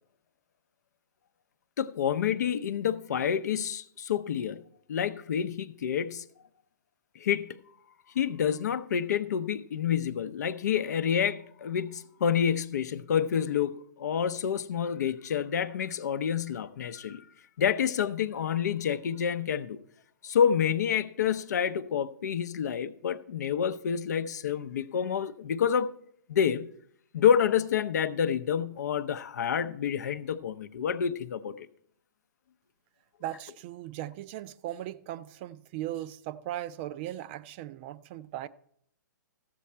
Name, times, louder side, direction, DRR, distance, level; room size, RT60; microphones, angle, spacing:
voice 1, 1.8-4.6 4.9-6.2 7.2-7.6 8.1-17.3 17.6-19.8 20.2-25.9 26.3-26.7 27.1-31.7, left 8 dB, 60° left, 0.6 m, -28 dB
voice 2, 33.2-38.5, right 13 dB, 35° right, 0.4 m, -38 dB
14.0 x 7.4 x 4.4 m
hypercardioid pair, 130°, 10 cm